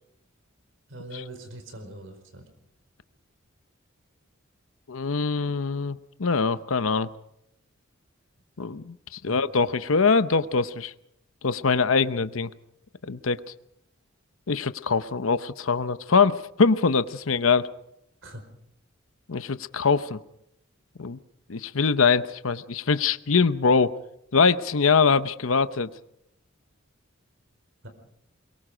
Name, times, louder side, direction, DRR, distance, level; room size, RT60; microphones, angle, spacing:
voice 1, 0.9-2.5 9.3-9.4 18.2-18.4 27.8-27.9, right 1 dB, 65° right, 7 dB, 4.7 m, -41 dB
voice 2, 4.9-7.1 8.6-10.9 11.4-12.5 13.0-13.4 14.5-17.7 19.3-20.2 21.0-21.2 21.5-23.9 24.3-25.9, left 5 dB, 85° left, 13 dB, 0.8 m, -23 dB
23.0 x 22.5 x 5.1 m, 0.76 s
head